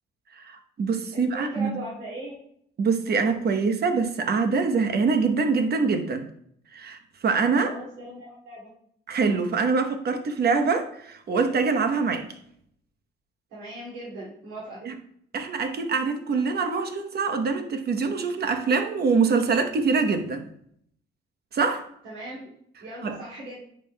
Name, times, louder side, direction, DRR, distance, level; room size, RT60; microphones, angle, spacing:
voice 1, 0.3-1.7 2.8-6.3 6.7-7.7 9.1-12.3 14.8-14.9 15.3-20.4 21.5-21.9 23.0-23.2, right 4 dB, 55° right, 7 dB, 1.0 m, -24 dB
voice 2, 1.1-2.4 7.5-8.7 13.5-14.8 22.0-22.5 22.8-23.6, right 1 dB, 85° right, -8 dB, 2.4 m, -38 dB
10.0 x 5.4 x 2.2 m, 0.68 s
cardioid pair, 90°, 20 cm